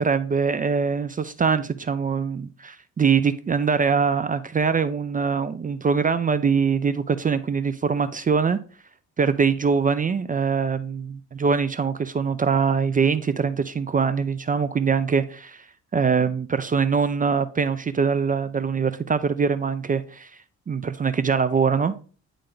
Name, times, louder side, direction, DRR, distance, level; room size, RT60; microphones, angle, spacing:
voice 1, 0.0-8.6 9.2-15.7 15.9-20.3 20.7-21.9, right 5 dB, 30° right, 0.5 m, -23 dB
9.9 x 3.3 x 3.8 m
cardioid pair, 90°, 30 cm